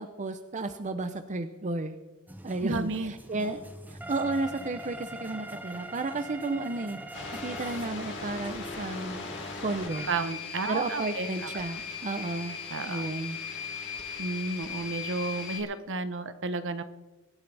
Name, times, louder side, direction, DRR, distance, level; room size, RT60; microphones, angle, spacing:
voice 1, 0.0-2.0 2.4-3.6 3.9-7.0 7.4-9.3 9.6-10.1 10.7-12.6 12.8-13.4, right 2 dB, 35° right, 9 dB, 0.6 m, -33 dB
sound 1, 2.3-10.1, right 1 dB, 10° right, 0.9 m, -43 dB
voice 2, 2.6-3.1 10.1-11.7 12.7-13.1 14.2-16.8, right 3 dB, 60° right, 11 dB, 1.0 m, -32 dB
sound 2, 7.1-15.6, left 5 dB, 55° left, 3.0 m, -38 dB
23.5 x 12.0 x 3.4 m, 1.2 s
head